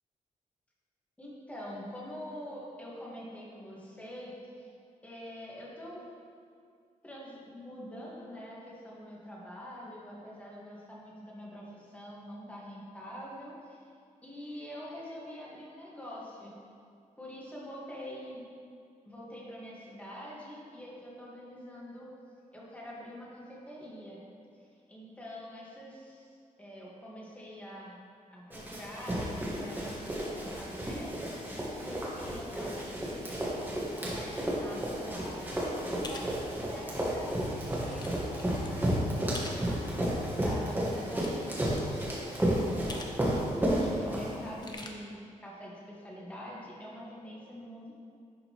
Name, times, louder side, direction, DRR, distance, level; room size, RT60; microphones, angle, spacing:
voice 1, 1.2-4.7 5.0-6.0 7.0-13.9 14.2-16.5 17.2-18.4 19.1-22.1 22.5-24.2 24.5-28.0 28.3-31.1 31.8-33.5 34.0-35.6 35.9-47.9, equal, 10° left, -5 dB, 1.5 m, -45 dB
Run, 28.5-44.7, equal, 15° right, 1.4 m, -32 dB
sound 1, 36.0-36.3 36.9-37.0 37.5-38.1 38.4-38.7 39.3-39.6 40.8-41.5 41.8-41.9 42.9-43.2 43.4-43.5 44.4-44.9, left 3 dB, 30° left, 0.6 m, -44 dB
10.5 x 5.1 x 3.0 m, 2.3 s
wide cardioid pair, 155°, 13 cm